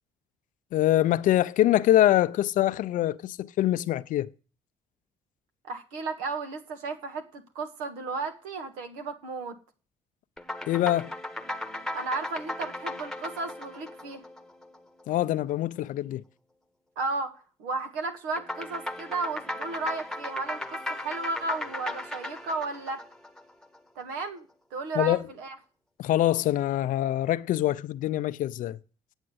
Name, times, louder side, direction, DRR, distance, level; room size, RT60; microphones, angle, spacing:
voice 1, 0.7-4.3 10.7-11.1 15.1-16.2 25.0-25.2 26.0-28.8, left 13 dB, 70° left, 0.6 m, -24 dB
voice 2, 5.6-9.6 11.9-14.2 16.9-23.0 23.9-25.6, right 3 dB, 90° right, 1.6 m, -34 dB
sound 1, 10.4-15.0 18.4-23.8, left 1 dB, 5° left, 1.1 m, -37 dB
8.9 x 7.3 x 8.0 m
supercardioid pair, 70°, 14 cm